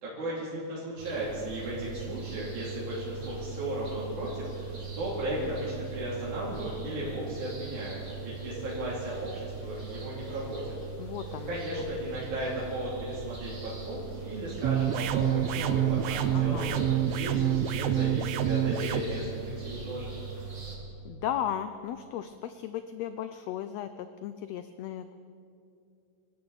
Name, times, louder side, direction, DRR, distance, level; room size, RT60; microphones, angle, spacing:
voice 1, 0.0-10.7 11.5-20.1, right 1 dB, 70° right, -7 dB, 4.3 m, -36 dB
sound 1, 1.0-20.8, right 4 dB, 25° right, 2.0 m, -40 dB
voice 2, 11.0-11.8 16.3-16.8 21.0-25.1, left 10 dB, 90° left, 10 dB, 1.4 m, -36 dB
sound 2, 14.6-19.0, right 11 dB, 90° right, 1.4 m, -27 dB
25.5 x 13.5 x 4.1 m, 2.6 s
omnidirectional pair, 3.6 m